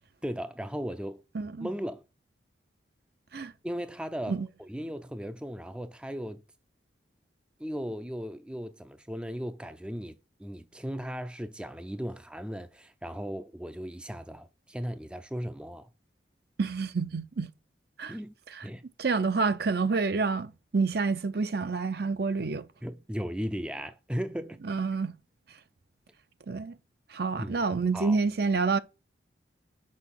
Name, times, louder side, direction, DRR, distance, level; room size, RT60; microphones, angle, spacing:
voice 1, 0.2-1.2 1.6-2.0 3.6-6.4 7.6-15.9 18.1-18.3 18.6-18.8 22.8-24.6 27.4-27.6 27.9-28.2, equal, 5° right, 0.4 m, -37 dB
voice 2, 1.3-1.7 3.3-3.5 4.3-4.5 16.6-17.5 18.0-18.2 18.5-18.6 19.0-22.6 24.6-25.1 26.5-26.7 27.1-28.8, right 4 dB, 55° right, 0.6 m, -28 dB
6.3 x 5.4 x 5.6 m
head